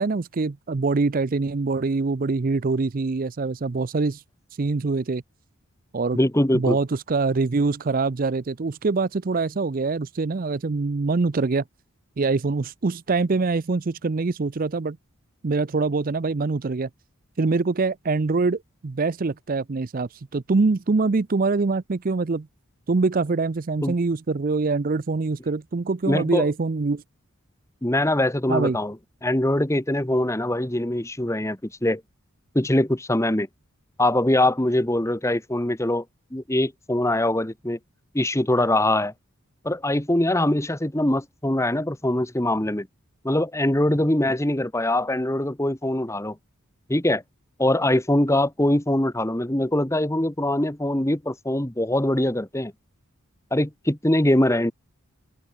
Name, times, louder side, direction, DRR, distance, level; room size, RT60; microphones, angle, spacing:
voice 1, 0.0-4.2 4.6-5.2 5.9-6.2 6.5-11.6 12.2-15.0 15.4-16.9 17.4-22.5 22.9-27.0 28.5-28.8, right 3 dB, 40° right, 0.5 m, -24 dB
voice 2, 6.1-6.8 23.8-23.9 26.1-26.5 27.8-28.9 29.2-32.0 32.5-33.5 34.0-36.0 36.3-37.8 38.1-39.1 39.6-42.9 43.2-46.4 46.9-47.2 47.6-52.7 53.5-54.7, left 1 dB, 15° left, 1.2 m, -22 dB
open air
head